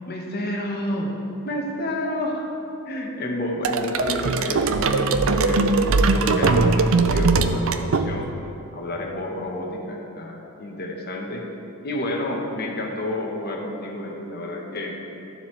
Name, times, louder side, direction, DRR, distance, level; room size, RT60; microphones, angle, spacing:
voice 1, 0.1-1.1 1.4-2.5 2.9-5.6 6.1-8.4 8.7-11.5 11.8-14.9, left 1 dB, 45° left, 0 dB, 1.1 m, -29 dB
sound 1, 3.6-8.5, right 3 dB, 60° right, 0.4 m, -20 dB
12.0 x 7.4 x 3.2 m, 2.8 s
head